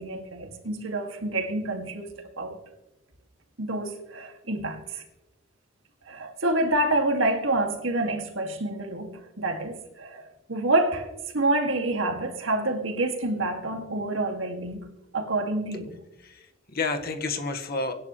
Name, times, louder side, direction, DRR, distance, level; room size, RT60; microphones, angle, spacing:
voice 1, 0.0-2.6 3.6-5.0 6.1-11.1 11.3-14.9 15.1-15.9, right 2 dB, 75° right, 2.3 m, -28 dB
voice 2, 16.2-17.9, left 3 dB, 50° left, 1.6 m, -30 dB
24.5 x 10.5 x 3.2 m
head